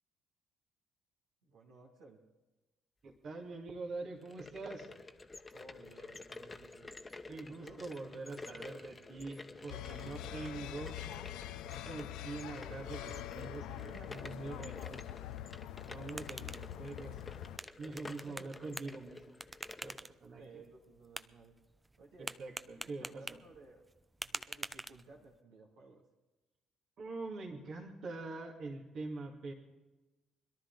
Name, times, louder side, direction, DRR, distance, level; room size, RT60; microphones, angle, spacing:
voice 1, 1.4-2.2 5.5-7.0 7.5-7.8 9.8-11.0 11.3-11.4 13.8-14.4 18.1-18.7 20.4-21.6 22.0-22.4 22.8-23.8 24.2-26.0, right 3 dB, 75° right, -3 dB, 2.3 m, -57 dB
voice 2, 3.0-4.9 7.3-11.0 11.9-15.0 15.8-17.2 17.8-19.4 19.8-19.9 20.2-20.4 22.4-23.4 27.0-29.5, right 3 dB, 55° right, 0 dB, 2.5 m, -44 dB
sound 1, 4.1-20.0, left 3 dB, 25° left, 1.1 m, -51 dB
sound 2, 9.7-17.6, left 12 dB, 70° left, 0.5 m, -44 dB
sound 3, 15.7-25.4, right 2 dB, 15° right, 0.5 m, -48 dB
22.0 x 12.5 x 4.1 m, 1.1 s
hypercardioid pair, 50°, 0 cm